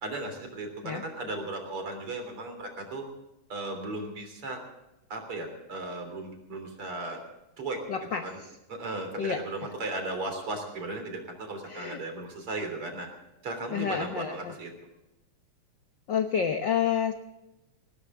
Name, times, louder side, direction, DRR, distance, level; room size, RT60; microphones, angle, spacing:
voice 1, 0.0-3.0 3.5-4.6 5.1-7.2 7.6-7.8 8.2-8.4 8.7-13.1 13.4-14.7, right 2 dB, 45° right, 5 dB, 4.2 m, -36 dB
voice 2, 7.9-8.5 9.2-9.4 11.7-12.0 13.7-14.5 16.1-17.2, left 7 dB, 75° left, 6 dB, 1.0 m, -29 dB
19.0 x 18.5 x 3.7 m, 0.95 s
omnidirectional pair, 3.5 m